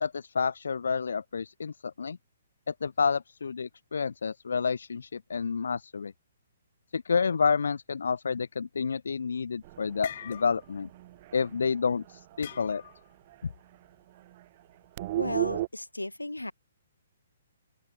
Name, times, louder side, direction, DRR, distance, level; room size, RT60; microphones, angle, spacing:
voice 1, 0.0-2.2 2.7-6.1 6.9-10.9 11.3-12.8, left 5 dB, 60° left, 1.0 m, -29 dB
sound 1, 9.1-9.5 9.8-10.9 11.1-11.4 12.4-13.1, left 10 dB, 45° left, 1.6 m, -43 dB
sound 2, 9.6-13.0 13.3-13.4 13.7-13.9 14.1-15.7, right 16 dB, 35° right, 2.7 m, -36 dB
voice 2, 15.2-16.5, left 2 dB, 80° left, 2.8 m, -34 dB
open air
figure-of-eight pair, 125°, 0 cm